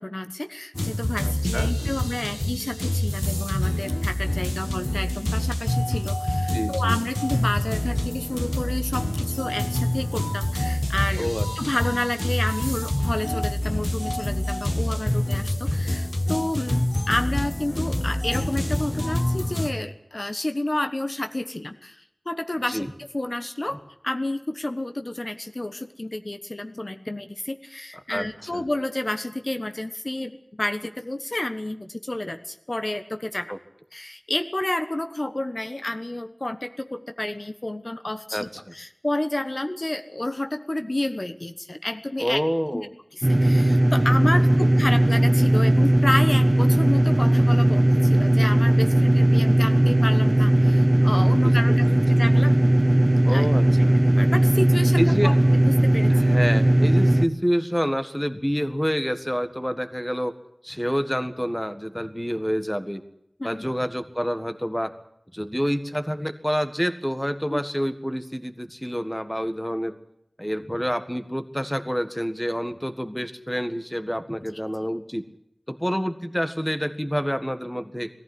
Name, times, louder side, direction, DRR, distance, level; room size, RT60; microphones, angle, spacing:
voice 1, 0.0-11.3 11.6-33.5 33.9-42.4 42.7-42.9 43.1-51.9 52.2-52.6 53.3-53.5 54.2-56.4 63.4-63.7 67.5-67.6, left 1 dB, 50° left, 8 dB, 1.2 m, -30 dB
sound 1, 0.8-19.7, left 1 dB, 35° left, 1.4 m, -26 dB
voice 2, 1.2-1.7 6.5-7.0 11.2-11.5 22.7-22.9 28.1-28.6 33.5-33.6 38.3-38.4 42.2-42.9 51.4-51.5 51.8-52.2 53.2-54.0 55.0-55.4 56.1-60.3 60.6-63.0 63.4-64.9 65.3-70.0 70.4-75.3 75.7-78.1, equal, 5° left, 9 dB, 1.7 m, -28 dB
sound 2, 43.2-57.3, right 1 dB, 40° right, 1.2 m, -18 dB
20.5 x 14.5 x 9.5 m, 0.78 s
wide cardioid pair, 40°, 0 cm